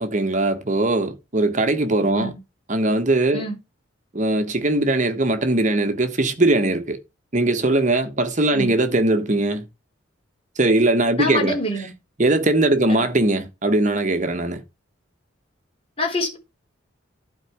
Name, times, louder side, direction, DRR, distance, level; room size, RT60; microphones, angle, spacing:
voice 1, 0.0-2.3 2.7-3.5 4.1-7.0 7.3-9.6 10.6-11.6 12.2-14.6, right 2 dB, 35° right, 1.1 m, -20 dB
voice 2, 11.2-11.9 12.9-13.0 16.0-16.4, left 1 dB, 30° left, 3.8 m, -26 dB
11.5 x 4.6 x 4.7 m
head